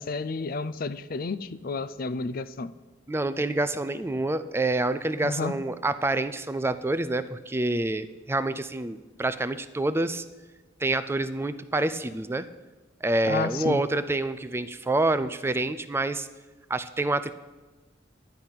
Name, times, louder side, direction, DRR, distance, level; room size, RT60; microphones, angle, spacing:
voice 1, 0.0-2.7 5.2-5.5 13.3-13.8, left 3 dB, 50° left, 15 dB, 0.5 m, -31 dB
voice 2, 3.1-10.2 10.8-12.5 13.0-16.3 16.7-17.3, right 2 dB, 15° right, 12 dB, 0.3 m, -27 dB
11.0 x 10.5 x 5.7 m, 1.2 s
head